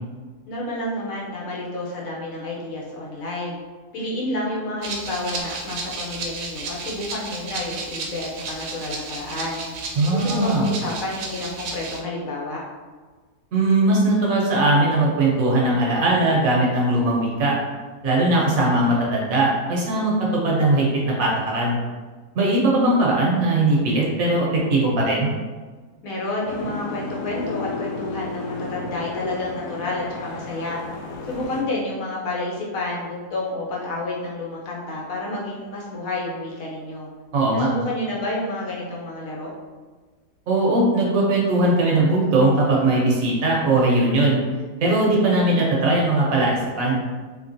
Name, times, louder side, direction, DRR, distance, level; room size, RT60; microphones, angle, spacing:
voice 1, 0.5-3.6 3.9-9.6 10.1-12.6 26.0-30.8 31.2-37.1 37.5-39.5, left 2 dB, 65° left, -3 dB, 1.1 m, -30 dB
Rattle (instrument), 4.8-12.0, right 3 dB, 85° right, 1.2 m, -33 dB
voice 2, 10.0-10.6 13.5-17.5 18.0-20.1 20.4-21.8 22.3-25.3 37.3-37.7 40.5-44.4 44.8-47.0, right 2 dB, 65° right, -3 dB, 1.1 m, -19 dB
Boat Water vehicle, 26.5-31.6, left 3 dB, 90° left, 1.1 m, -33 dB
3.5 x 2.9 x 2.6 m, 1.4 s
omnidirectional pair, 1.6 m